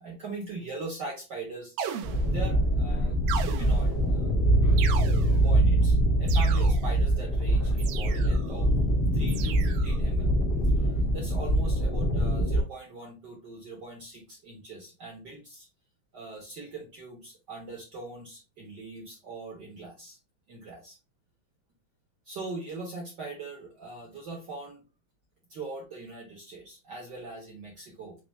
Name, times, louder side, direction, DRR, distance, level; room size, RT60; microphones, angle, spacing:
voice 1, 0.0-4.4 5.3-8.7 9.1-10.4 10.7-10.9 11.1-15.7 16.1-20.2 20.5-21.0 22.2-24.8 25.5-28.2, right 3 dB, 60° right, -2 dB, 1.1 m, -41 dB
sound 1, 1.8-2.6 3.3-4.1 4.8-5.5 6.3-7.0 7.8-8.5 9.3-10.0, right 8 dB, 80° right, 1.7 m, -37 dB
sound 2, 2.0-12.6, right 1 dB, 55° left, 0.5 m, -24 dB
5.9 x 2.4 x 3.5 m, 0.30 s
omnidirectional pair, 3.7 m